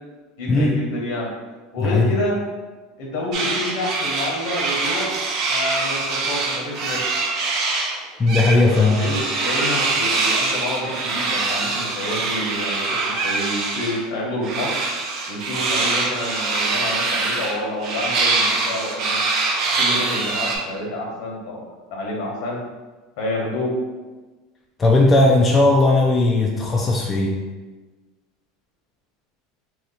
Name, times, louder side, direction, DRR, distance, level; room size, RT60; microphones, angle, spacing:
voice 1, 0.4-1.3 1.7-2.4 3.0-5.1 5.5-7.2 8.9-14.8 15.3-19.2 19.8-22.6 23.2-23.7, left 1 dB, 70° left, -2 dB, 1.1 m, -28 dB
voice 2, 1.8-2.1 8.2-9.0 24.8-27.4, left 2 dB, 25° left, -1 dB, 0.4 m, -17 dB
sound 1, 3.3-7.9 8.3-14.0 14.4-20.6, right 3 dB, 55° right, 0.7 m, -24 dB
2.9 x 2.4 x 4.0 m, 1.3 s
supercardioid pair, 115°, 0 cm